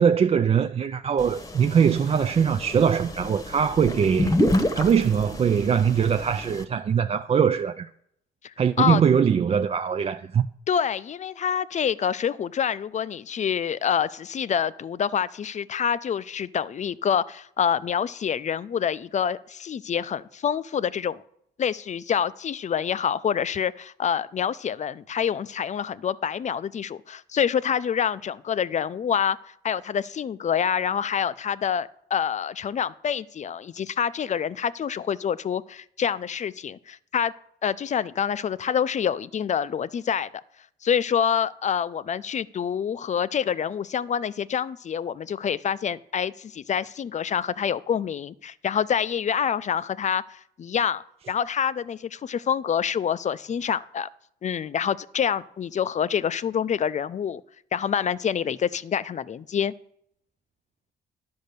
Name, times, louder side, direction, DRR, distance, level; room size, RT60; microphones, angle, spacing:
voice 1, 0.0-4.4 4.8-7.9 8.6-10.5, right 7 dB, 30° right, 0.3 m, -22 dB
sound 1, 1.2-6.6, left 1 dB, 15° left, 1.0 m, -29 dB
voice 2, 8.4-9.0 10.7-21.2 21.6-37.3 37.6-40.3 40.8-54.1 54.4-57.4 57.7-59.7, left 8 dB, 35° left, 0.4 m, -27 dB
10.5 x 5.2 x 6.7 m
cardioid pair, 90°, 20 cm